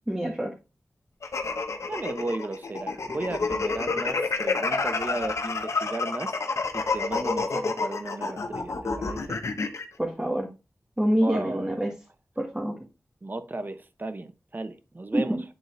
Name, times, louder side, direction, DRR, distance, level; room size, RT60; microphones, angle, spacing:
voice 1, 0.1-0.5 10.0-10.5 11.0-11.9 12.4-12.7 15.1-15.4, equal, 15° right, 1.5 m, -26 dB
sound 1, 1.2-9.8, left 4 dB, 80° left, 0.9 m, -29 dB
voice 2, 1.9-6.3 6.7-9.4 11.2-11.8 13.2-15.4, right 2 dB, 40° right, 0.8 m, -35 dB
8.8 x 3.9 x 3.1 m
cardioid pair, 50°, 5 cm